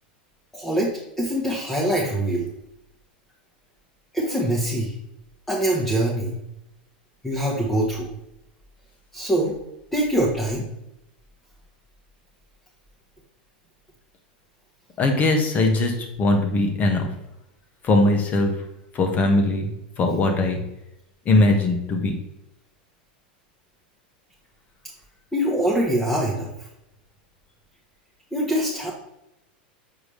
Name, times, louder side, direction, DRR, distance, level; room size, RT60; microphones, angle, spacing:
voice 1, 0.5-2.5 4.1-4.9 5.5-6.4 7.2-8.1 9.1-9.6 9.9-10.7 25.3-26.5 28.3-28.9, right 1 dB, 10° left, -4 dB, 1.5 m, -23 dB
voice 2, 15.0-17.1 17.8-18.5 18.9-19.7 20.0-20.6 21.2-22.1, left 2 dB, 30° left, 4 dB, 1.5 m, -20 dB
7.2 x 4.8 x 3.3 m, 0.85 s
hypercardioid pair, 105°, 5 cm